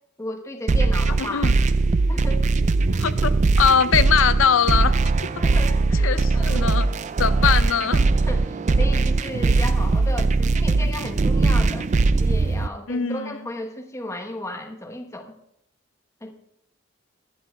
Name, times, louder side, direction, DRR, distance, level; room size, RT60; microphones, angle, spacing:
voice 1, 0.2-1.5 2.1-2.4 2.9-3.1 5.3-6.7 7.3-7.6 8.2-11.9 12.2-15.3 16.2-16.3, left 1 dB, 15° left, 1.1 m, -34 dB
sound 1, 0.7-12.7, right 3 dB, 35° right, 0.4 m, -20 dB
voice 2, 1.2-1.5 3.0-4.9 6.0-6.9 7.2-8.1 12.9-13.3, left 7 dB, 80° left, 0.6 m, -21 dB
24.0 x 11.5 x 2.3 m
head